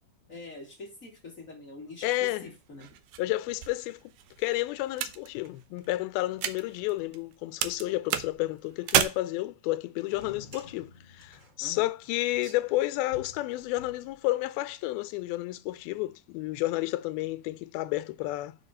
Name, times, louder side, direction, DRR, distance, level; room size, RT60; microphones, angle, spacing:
voice 1, 0.3-2.9 11.6-11.8, left 3 dB, 40° left, 1.2 m, -44 dB
voice 2, 2.0-2.5 3.2-4.1 4.4-18.6, left 17 dB, 90° left, 2.5 m, -31 dB
sound 1, 2.2-7.3 7.6-9.0, right 11 dB, 80° right, 2.1 m, -32 dB
sound 2, 10.0-14.6, left 2 dB, 50° right, 0.5 m, -51 dB
5.9 x 5.1 x 5.5 m
omnidirectional pair, 4.2 m